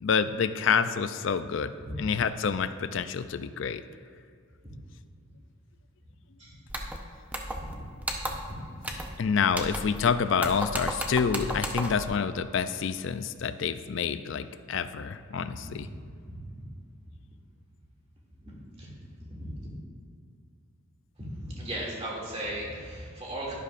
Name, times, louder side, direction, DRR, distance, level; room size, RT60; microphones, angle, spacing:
voice 1, 0.0-1.7 2.0-3.8 9.2-15.9, left 6 dB, 60° left, 12 dB, 0.4 m, -28 dB
sound 1, 6.7-7.0 7.3-7.7 8.0-8.5 8.8-9.2 9.5-10.1 10.4-12.1, right 1 dB, 5° right, 0.6 m, -34 dB
voice 2, 15.3-15.7 16.3-16.4 18.4-18.9 19.4-19.5 21.4-23.6, right 1 dB, 30° right, -5 dB, 2.4 m, -37 dB
11.5 x 11.0 x 2.5 m, 2.3 s
head